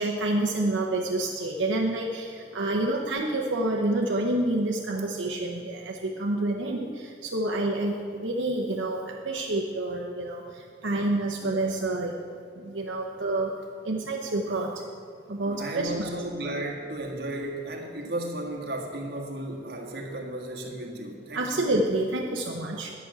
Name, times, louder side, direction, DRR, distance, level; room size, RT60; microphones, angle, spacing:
voice 1, 0.0-12.2 12.5-13.5 13.8-14.8 15.3-16.1 21.3-22.9, right 2 dB, 85° right, 0 dB, 0.8 m, -28 dB
voice 2, 11.4-11.8 15.4-21.7, right 1 dB, 60° right, 0 dB, 1.6 m, -34 dB
10.5 x 6.1 x 8.1 m, 2.3 s
head